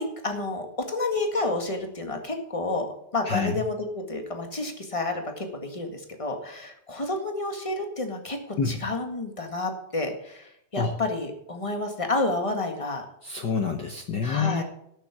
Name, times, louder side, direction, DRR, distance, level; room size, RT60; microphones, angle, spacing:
voice 1, 0.0-13.0 14.2-14.6, left 2 dB, 15° left, 4 dB, 1.2 m, -30 dB
voice 2, 3.3-3.6 8.6-8.7 10.8-10.9 13.2-14.6, left 5 dB, 65° left, 4 dB, 1.1 m, -27 dB
13.0 x 6.9 x 7.3 m, 0.74 s
omnidirectional pair, 3.3 m